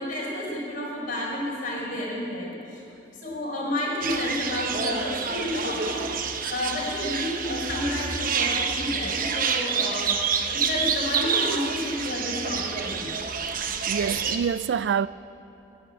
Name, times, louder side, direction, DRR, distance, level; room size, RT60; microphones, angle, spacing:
voice 1, 0.0-2.8 3.2-6.1 6.5-10.1 10.5-13.1, left 1 dB, 50° left, 4.3 m, -30 dB
sound 1, 4.0-14.4, right 6 dB, 50° right, 0.8 m, -28 dB
voice 2, 13.6-15.1, right 7 dB, 65° right, 0.3 m, -27 dB
13.5 x 9.4 x 8.6 m
head